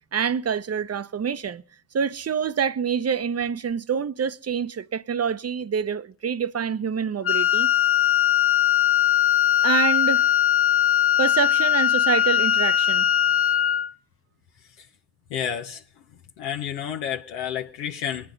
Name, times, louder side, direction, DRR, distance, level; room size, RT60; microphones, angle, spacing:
voice 1, 0.1-1.6 1.9-7.7 9.6-10.4 11.2-13.1, right 7 dB, 30° right, 0.7 m, -26 dB
Wind instrument woodwind instrument, 7.2-13.9, left 11 dB, 25° left, 0.8 m, -20 dB
voice 2, 15.3-15.8 16.4-18.3, left 9 dB, 85° left, 1.0 m, -30 dB
21.5 x 10.0 x 3.9 m
hypercardioid pair, 55°, 50 cm